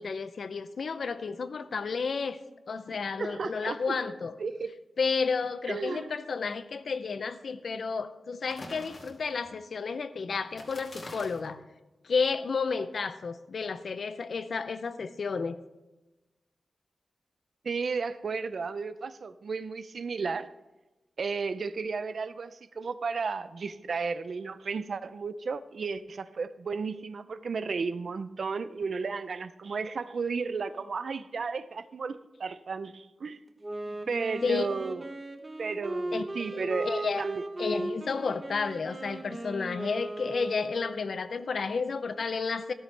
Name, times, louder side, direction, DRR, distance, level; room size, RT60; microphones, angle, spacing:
voice 1, 0.0-2.4 2.7-4.3 5.0-11.6 12.0-15.6 33.9-34.0 34.4-34.7 36.1-37.3 37.6-42.7, left 5 dB, 65° left, 12 dB, 0.6 m, -32 dB
voice 2, 3.2-3.9 4.4-4.7 5.7-6.1 17.6-20.5 21.2-33.4 34.1-35.0 35.6-36.9 37.2-37.4, right 4 dB, 65° right, 14 dB, 0.5 m, -33 dB
sound 1, 8.5-9.5 10.5-11.5, left 2 dB, 45° left, 2.2 m, -45 dB
Wind instrument woodwind instrument, 33.6-41.4, right 1 dB, 25° right, 0.9 m, -37 dB
13.5 x 13.5 x 3.3 m, 1.1 s
wide cardioid pair, 145°, 0 cm